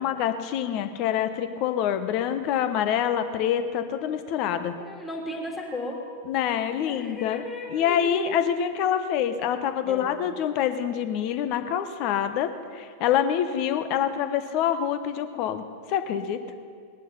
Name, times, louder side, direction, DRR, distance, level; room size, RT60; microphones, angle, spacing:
voice 1, 0.0-4.7 6.3-7.4 7.7-15.6 15.9-16.4, left 9 dB, 40° left, 10 dB, 1.1 m, -26 dB
voice 2, 4.8-6.0 6.8-8.3 9.8-10.2, left 2 dB, 15° left, -1 dB, 3.3 m, -35 dB
20.0 x 11.5 x 5.7 m, 2.2 s
figure-of-eight pair, 90°, 0 cm